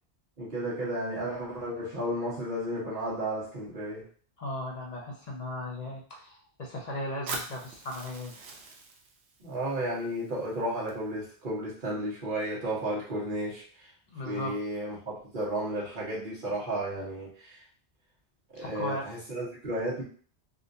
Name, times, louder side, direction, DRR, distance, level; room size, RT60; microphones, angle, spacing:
voice 1, 0.4-4.1 9.4-13.9 14.2-17.6 18.5-20.0, right 1 dB, 50° right, -6 dB, 1.4 m, -33 dB
voice 2, 4.4-8.3 14.1-14.6 18.5-19.1, left 1 dB, 45° left, -2 dB, 0.8 m, -37 dB
Fire, 7.3-11.3, right 3 dB, 80° right, 0.9 m, -43 dB
3.6 x 2.5 x 2.6 m, 0.43 s
omnidirectional pair, 1.1 m